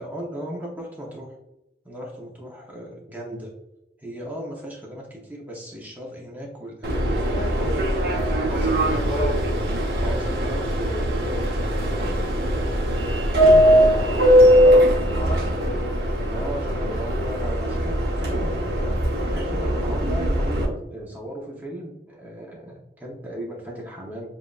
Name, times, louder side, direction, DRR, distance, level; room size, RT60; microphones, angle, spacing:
voice 1, 0.0-1.3 1.8-3.5 4.0-7.5 8.4-9.0 9.9-12.3 16.3-24.3, equal, 10° right, -2 dB, 0.8 m, -36 dB
Subway metro underground, 6.8-20.7, equal, 60° right, 0.9 m, -20 dB
voice 2, 7.0-9.4 13.5-15.8, left 1 dB, 40° left, 0 dB, 0.5 m, -34 dB
7.2 x 2.5 x 2.4 m, 0.91 s
head